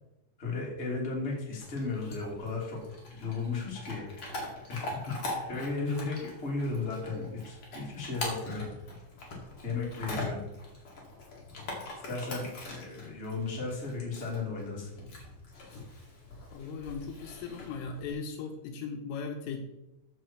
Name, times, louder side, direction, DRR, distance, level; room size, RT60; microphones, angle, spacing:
voice 1, 0.4-2.8 3.1-4.1 4.7-8.7 9.6-10.5 12.0-14.9, left 3 dB, 20° left, -4 dB, 2.1 m, -35 dB
Chewing mastication / Dog, 1.6-18.1, left 2 dB, 40° left, 2.2 m, -42 dB
voice 2, 16.5-19.6, left 5 dB, 80° left, 4 dB, 3.4 m, -38 dB
14.0 x 6.0 x 4.6 m, 0.91 s
omnidirectional pair, 5.9 m